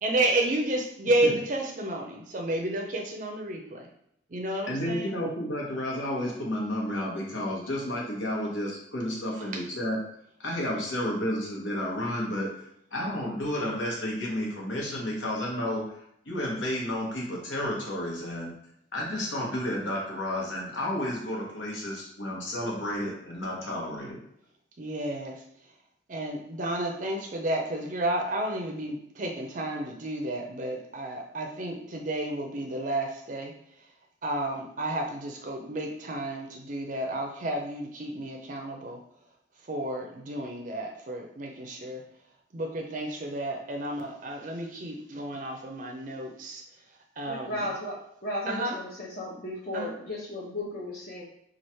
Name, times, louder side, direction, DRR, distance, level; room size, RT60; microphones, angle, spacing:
voice 1, 0.0-3.9 4.3-5.1 9.3-9.6 24.8-25.4 26.1-33.5 34.2-39.0 39.7-42.0 42.5-46.6 47.2-47.8 48.5-48.8 49.7-49.9, right 1 dB, 40° right, 2 dB, 0.5 m, -31 dB
voice 2, 4.7-10.0 10.4-15.8 16.2-18.5 18.9-24.2, left 1 dB, 75° left, -2 dB, 1.1 m, -31 dB
voice 3, 47.2-51.2, left 1 dB, 45° left, -7 dB, 0.7 m, -35 dB
3.1 x 2.4 x 4.3 m, 0.73 s
head